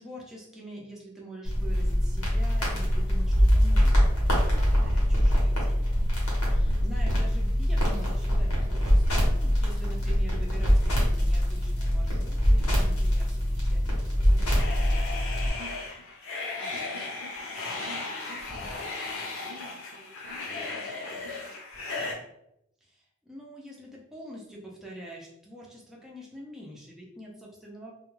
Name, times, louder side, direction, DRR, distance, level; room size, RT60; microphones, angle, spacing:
voice 1, 0.0-4.5 4.8-14.8 22.8-27.9, right 1 dB, ahead, -4 dB, 0.4 m, -45 dB
sound 1, 1.4-15.5, equal, 85° left, 0.9 m, -23 dB
voice 2, 4.5-5.0 15.4-21.9 23.6-23.7, right 1 dB, 85° right, 1 dB, 0.7 m, -50 dB
sound 2, 14.6-22.1, left 3 dB, 60° left, 0.6 m, -36 dB
2.2 x 2.2 x 3.1 m, 0.80 s
head